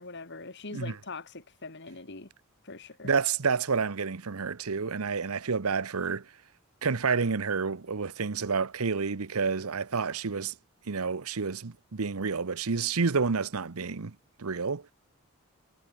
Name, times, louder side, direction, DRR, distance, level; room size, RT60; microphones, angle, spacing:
voice 1, 0.0-2.3 2.6-3.1, left 3 dB, 55° left, 2.3 m, -42 dB
voice 2, 3.0-6.3 6.8-10.5 10.9-14.8, right 5 dB, 85° right, 0.9 m, -29 dB
head